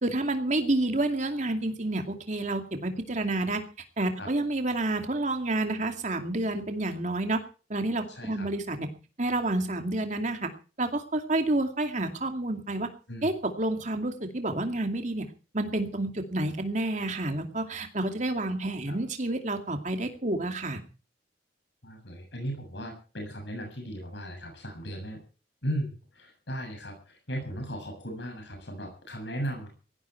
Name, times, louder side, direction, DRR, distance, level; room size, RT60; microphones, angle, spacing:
voice 1, 0.0-3.6 4.0-7.4 7.7-8.9 9.2-10.5 10.8-12.9 13.2-15.3 15.5-20.8, right 2 dB, 40° right, 6 dB, 2.4 m, -29 dB
voice 2, 8.1-8.5 13.1-13.3 18.9-19.0 21.8-25.2 25.6-29.7, equal, 65° left, 3 dB, 7.3 m, -36 dB
17.5 x 15.0 x 4.6 m, 0.37 s
head